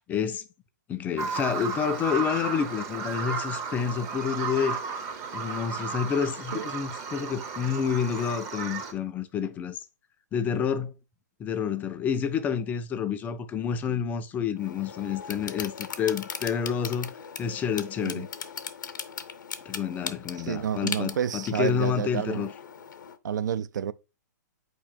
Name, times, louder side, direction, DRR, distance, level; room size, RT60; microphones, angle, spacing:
voice 1, 0.1-0.5 0.9-4.9 5.3-9.8 10.3-10.9 11.4-17.1 17.4-18.3 19.7-22.5, left 7 dB, 15° left, 0.3 m, -29 dB
Bird vocalization bird call bird song, 1.2-8.9, right 5 dB, 30° right, 0.7 m, -34 dB
sound 1, 14.6-23.2, left 7 dB, 80° left, 0.6 m, -39 dB
voice 2, 20.4-22.5 23.2-23.9, right 9 dB, 75° right, 0.4 m, -29 dB
4.2 x 2.9 x 4.3 m
hypercardioid pair, 135°, 10 cm